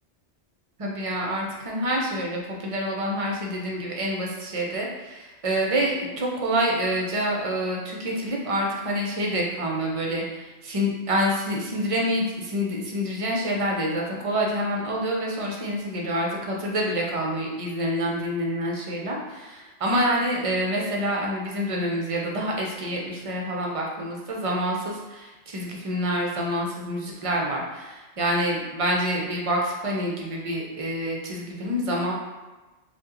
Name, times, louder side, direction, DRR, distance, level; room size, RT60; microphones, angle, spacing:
voice 1, 0.8-32.1, equal, 45° right, -2 dB, 0.4 m, -27 dB
2.8 x 2.2 x 3.6 m, 1.2 s
omnidirectional pair, 1.1 m